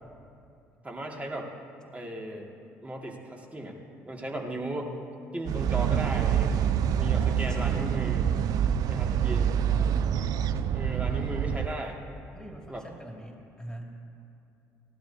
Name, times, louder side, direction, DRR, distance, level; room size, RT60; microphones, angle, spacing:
voice 1, 0.8-1.5 1.9-2.5 2.8-3.8 4.1-4.9 5.3-6.5 7.0-8.2 8.9-9.5 10.7-12.0 12.7-12.8, right 1 dB, 20° right, 0 dB, 2.3 m, -36 dB
sound 1, 5.5-11.7, right 9 dB, 60° right, 0.4 m, -26 dB
voice 2, 7.1-8.3 9.7-10.3 12.3-13.9, right 1 dB, 10° left, 0 dB, 2.6 m, -42 dB
18.5 x 12.5 x 2.9 m, 2.7 s
hypercardioid pair, 50°, 7 cm